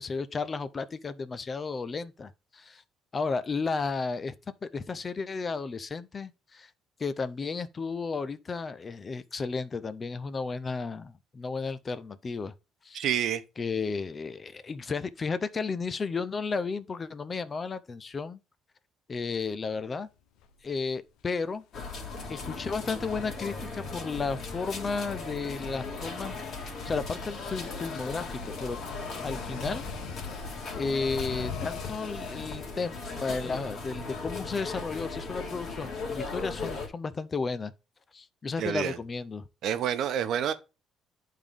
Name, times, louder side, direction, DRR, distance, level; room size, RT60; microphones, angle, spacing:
voice 1, 0.0-2.8 3.1-4.3 4.6-6.7 7.0-12.5 12.8-13.1 13.6-18.4 19.1-20.1 20.6-21.6 22.3-26.4 26.6-28.8 29.2-29.9 30.7-37.7 38.1-39.4, left 4 dB, 30° left, 0.5 m, -33 dB
voice 2, 12.9-13.4 38.6-39.0 39.6-40.5, right 9 dB, 65° right, 0.7 m, -28 dB
sound 1, 20.4-20.6 22.3-32.3, left 7 dB, 85° left, 0.6 m, -45 dB
sound 2, 21.7-36.9, left 3 dB, 50° left, 1.9 m, -37 dB
10.0 x 3.7 x 3.4 m
cardioid pair, 120°, 0 cm